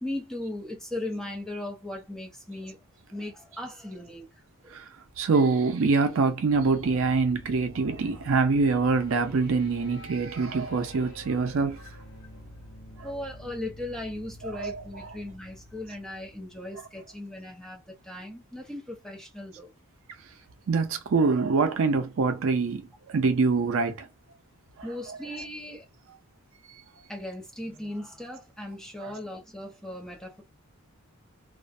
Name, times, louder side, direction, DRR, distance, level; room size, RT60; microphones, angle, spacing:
voice 1, 0.0-2.8 3.1-4.8 13.0-19.7 24.8-25.9 27.1-30.4, left 1 dB, ahead, 0.5 m, -38 dB
voice 2, 5.2-11.8 14.5-14.8 20.7-24.1, right 4 dB, 65° right, 0.4 m, -24 dB
sound 1, 6.4-17.4, equal, 65° left, 0.8 m, -47 dB
2.4 x 2.1 x 2.5 m
head